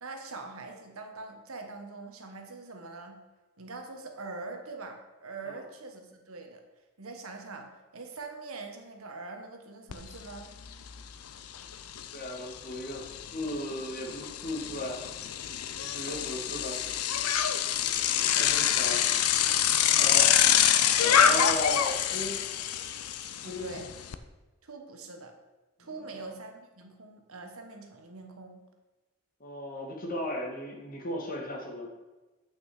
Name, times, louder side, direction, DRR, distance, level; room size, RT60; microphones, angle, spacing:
voice 1, 0.0-3.2 3.6-6.6 7.0-10.5 23.4-23.9 24.6-25.3 25.8-28.6, right 3 dB, 75° right, 4 dB, 1.2 m, -43 dB
Bicycle, 9.9-10.0 10.4-24.2, left 9 dB, 90° left, 0.6 m, -26 dB
voice 2, 12.1-15.0 15.8-16.8 18.0-19.0 20.0-20.4 20.9-22.4 23.5-23.8 25.8-26.3 29.4-31.9, left 1 dB, 40° left, 0 dB, 1.7 m, -36 dB
8.5 x 6.1 x 4.9 m, 1.2 s
head